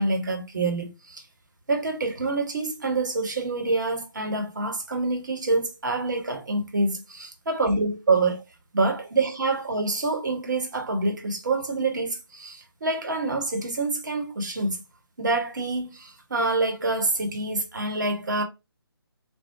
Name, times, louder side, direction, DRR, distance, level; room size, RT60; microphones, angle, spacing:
voice 1, 0.0-1.3 1.7-8.4 8.7-14.8 15.2-18.4, right 3 dB, 50° right, 1.2 m, -26 dB
3.3 x 2.3 x 3.2 m
figure-of-eight pair, 150°, 13 cm